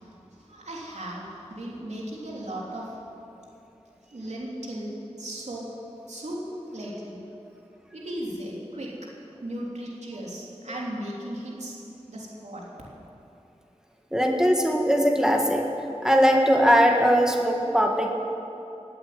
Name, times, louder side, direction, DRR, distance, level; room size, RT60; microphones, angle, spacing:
voice 1, 0.0-3.0 4.1-4.9 5.2-5.6 6.1-6.4 6.7-7.2 7.9-8.9 9.4-11.8 12.1-12.6, right 1 dB, 85° right, -4 dB, 3.2 m, -36 dB
voice 2, 14.1-15.7 16.0-18.1, equal, 5° right, 1 dB, 1.8 m, -20 dB
16.5 x 8.9 x 9.4 m, 2.9 s
wide cardioid pair, 45°, 11 cm